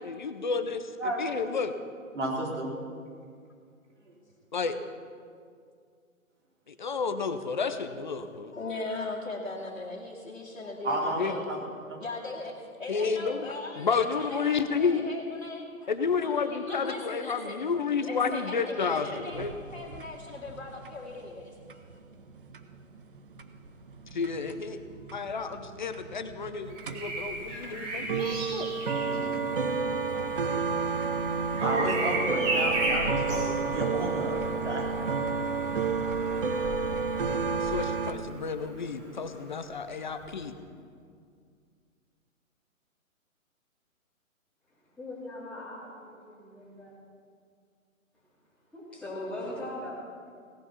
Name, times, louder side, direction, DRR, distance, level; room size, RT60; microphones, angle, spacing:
voice 1, 0.0-0.9 1.2-1.7 4.5-4.8 6.7-8.5 11.2-11.3 12.9-13.5 13.8-15.0 15.9-19.5 24.1-24.8 25.1-28.7 37.6-40.5, left 5 dB, 35° left, 10 dB, 0.8 m, -31 dB
voice 2, 2.1-2.7 10.8-11.2 11.5-11.6 29.0-29.5 31.6-35.2, right 1 dB, 55° right, -2 dB, 4.2 m, -32 dB
voice 3, 8.5-11.5 12.0-17.6 18.0-22.0 24.9-25.1 32.2-32.4, left 3 dB, 60° left, -4 dB, 2.3 m, -39 dB
sound 1, 19.0-38.1, right 5 dB, 40° right, 0.9 m, -31 dB
Bird vocalization bird call bird song, 26.7-38.5 40.2-40.4, right 2 dB, 20° right, 3.5 m, -35 dB
voice 4, 44.7-47.0 48.7-50.0, left 1 dB, ahead, -9 dB, 3.1 m, -40 dB
17.5 x 11.0 x 5.8 m, 2.2 s
figure-of-eight pair, 140°, 42 cm